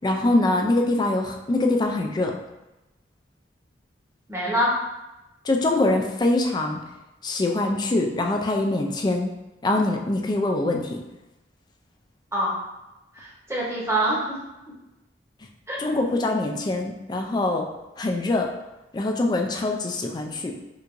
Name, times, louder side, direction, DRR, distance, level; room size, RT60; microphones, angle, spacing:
voice 1, 0.0-2.3 5.4-6.8 7.2-9.3 9.6-11.0 15.8-17.7 18.0-18.5 18.9-20.5, left 2 dB, 25° left, 2 dB, 0.4 m, -23 dB
voice 2, 4.3-4.8 12.3-12.6 13.1-14.3 15.7-15.8, right 1 dB, 15° right, -6 dB, 1.0 m, -25 dB
4.5 x 2.6 x 2.5 m, 0.98 s
head